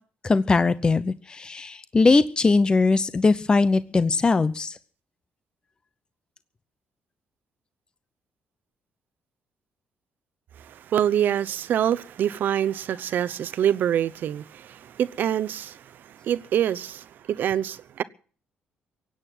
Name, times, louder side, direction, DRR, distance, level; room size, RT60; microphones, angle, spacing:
voice 1, 0.2-4.8, left 3 dB, 25° left, 0.7 m, -20 dB
voice 2, 10.7-15.8 16.1-18.0, right 10 dB, 65° right, 0.9 m, -25 dB
17.0 x 9.0 x 9.2 m
cardioid pair, 105°, 3 cm